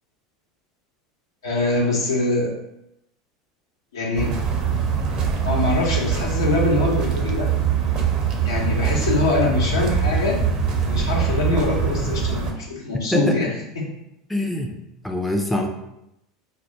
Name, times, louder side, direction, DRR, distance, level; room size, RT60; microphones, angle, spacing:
voice 1, 1.4-2.5 3.9-4.3 5.4-7.5 8.4-10.4 10.8-13.5 13.8-13.9, left 2 dB, 80° left, -2 dB, 0.8 m, -23 dB
sound 1, 4.1-12.5, right 6 dB, 40° right, 0.6 m, -23 dB
voice 2, 13.1-13.5 14.3-14.7 15.0-15.7, left 1 dB, 5° left, 2 dB, 0.4 m, -24 dB
2.4 x 2.3 x 4.0 m, 0.84 s
hypercardioid pair, 80°, 2 cm